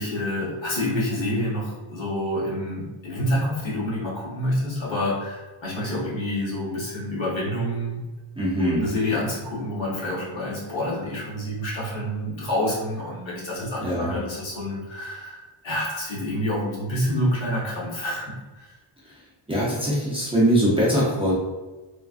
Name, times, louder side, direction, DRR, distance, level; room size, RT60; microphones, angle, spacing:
voice 1, 0.0-8.0 8.6-18.3 18.6-18.7, left 1 dB, 65° left, -6 dB, 1.2 m, -28 dB
voice 2, 8.4-8.8 13.8-14.2 19.5-21.3, equal, 10° right, -7 dB, 0.5 m, -22 dB
3.2 x 2.3 x 2.4 m, 1.2 s
wide cardioid pair, 180°, 49 cm